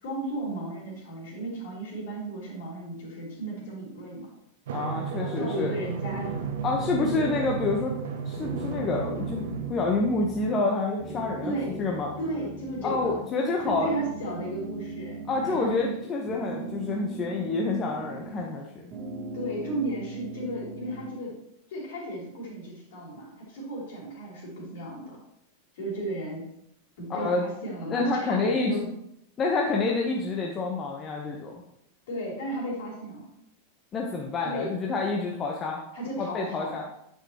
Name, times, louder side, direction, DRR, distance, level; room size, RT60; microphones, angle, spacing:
voice 1, 0.0-4.3 5.2-6.4 6.9-7.3 11.4-11.8 12.2-13.2 13.6-15.9 19.3-21.4 21.7-25.2 25.7-26.4 27.0-28.8 32.1-33.3 34.4-34.7 35.9-36.7, right 1 dB, 55° left, -3 dB, 3.4 m, -34 dB
voice 2, 4.7-5.7 6.6-7.9 8.2-12.1 12.8-13.9 15.3-18.9 27.1-27.5 27.9-28.9 29.4-31.6 33.9-35.8 36.2-36.8, left 3 dB, 25° left, 0 dB, 1.0 m, -28 dB
Drum, 4.7-9.7, right 6 dB, 60° right, 1.0 m, -34 dB
sound 1, 6.0-8.1 8.4-10.7 11.0-13.3 13.6-16.0 16.3-18.6 18.9-21.2, right 3 dB, 25° right, 1.8 m, -39 dB
9.6 x 6.2 x 3.0 m, 0.77 s
figure-of-eight pair, 90°, 0 cm